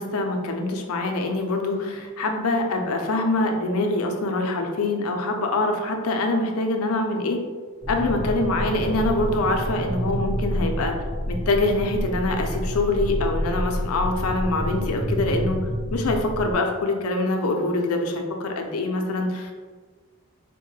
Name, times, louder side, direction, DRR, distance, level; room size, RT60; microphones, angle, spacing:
voice 1, 0.0-7.4 7.9-11.0 11.3-19.5, left 2 dB, 90° left, 3 dB, 0.5 m, -24 dB
sound 1, 7.8-16.5, equal, ahead, 0.5 m, -28 dB
4.3 x 2.1 x 3.1 m, 1.5 s
head